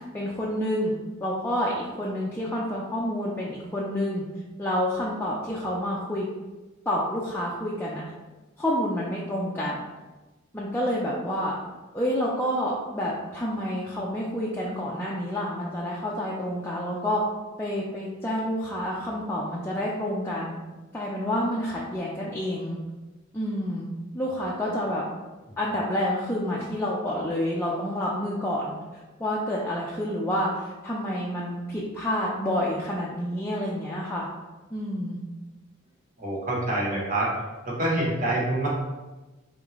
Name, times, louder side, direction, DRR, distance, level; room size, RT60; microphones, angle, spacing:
voice 1, 0.1-0.9 1.2-4.2 4.6-6.3 6.9-8.0 8.6-9.8 10.5-11.6 11.9-17.2 17.6-20.5 20.9-22.8 23.3-23.9 24.1-25.0 25.6-28.7 29.2-34.3 34.7-35.2, equal, 10° left, -5 dB, 0.4 m, -28 dB
voice 2, 36.2-38.7, right 1 dB, 40° right, -4 dB, 1.1 m, -26 dB
3.8 x 3.6 x 3.1 m, 1.2 s
head